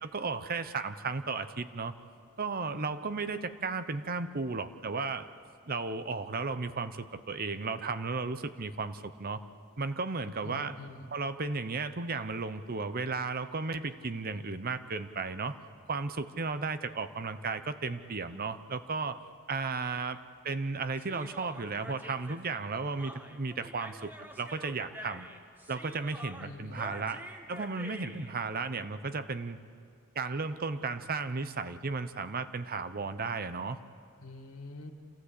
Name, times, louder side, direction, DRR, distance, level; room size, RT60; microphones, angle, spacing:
voice 1, 0.0-1.9 2.4-5.3 5.7-9.4 9.8-10.7 11.1-15.6 15.9-19.2 19.5-20.2 20.4-24.1 24.4-25.3 25.7-27.2 27.5-29.6 30.1-33.8, right 4 dB, 40° right, 11 dB, 0.8 m, -34 dB
voice 2, 10.4-11.1 26.4-26.9 34.2-34.9, left 2 dB, 70° left, 4 dB, 2.2 m, -45 dB
Human voice, 21.0-28.3, equal, 10° right, 1.3 m, -47 dB
27.5 x 15.5 x 8.3 m, 2.3 s
head